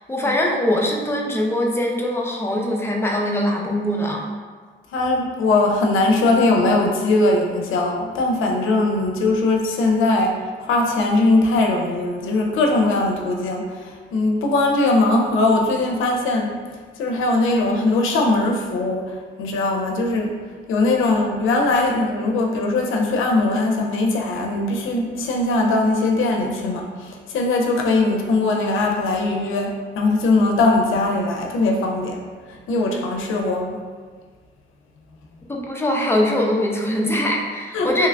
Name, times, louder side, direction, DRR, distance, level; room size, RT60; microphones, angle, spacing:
voice 1, 0.0-4.3 35.5-38.1, left 1 dB, 10° left, -1 dB, 0.4 m, -22 dB
voice 2, 4.9-16.6 17.0-20.3 20.7-32.2 32.5-33.8 37.7-37.9, left 2 dB, 85° left, 1 dB, 0.5 m, -20 dB
3.0 x 2.4 x 3.3 m, 1.6 s
cardioid pair, 125°, 20 cm